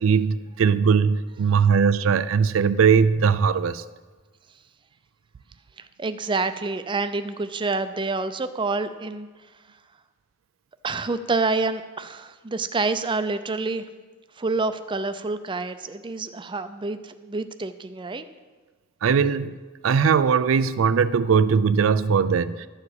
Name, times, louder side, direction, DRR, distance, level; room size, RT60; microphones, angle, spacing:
voice 1, 0.0-3.8 19.0-19.6 19.8-22.7, right 6 dB, 80° right, 15 dB, 0.4 m, -20 dB
voice 2, 6.0-9.3 10.8-13.9 14.4-18.3, right 3 dB, 25° right, 11 dB, 0.5 m, -27 dB
12.0 x 4.8 x 8.0 m, 1.3 s
head